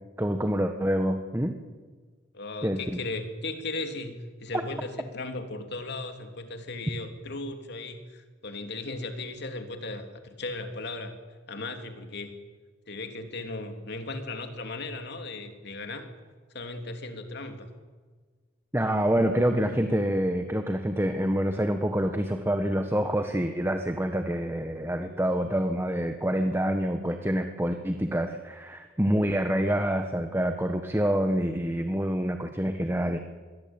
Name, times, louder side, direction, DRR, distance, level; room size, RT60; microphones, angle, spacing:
voice 1, 0.2-1.6 2.6-2.8 18.7-33.2, equal, 10° right, 6 dB, 1.4 m, -27 dB
voice 2, 2.3-11.1 11.5-12.3 12.9-16.1 16.5-17.7, left 2 dB, 60° left, 6 dB, 3.0 m, -36 dB
26.5 x 22.0 x 8.9 m, 1.4 s
head